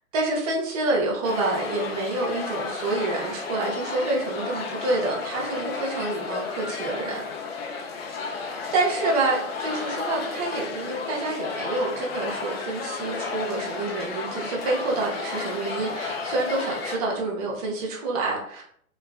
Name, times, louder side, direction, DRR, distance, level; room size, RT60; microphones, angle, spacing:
voice 1, 0.1-7.2 8.2-8.4 8.7-18.6, right 2 dB, 30° right, -3 dB, 0.5 m, -27 dB
sound 1, 1.2-17.0, left 4 dB, 45° left, 0.4 m, -33 dB
3.3 x 2.3 x 2.3 m, 0.66 s
hypercardioid pair, 135°, 44 cm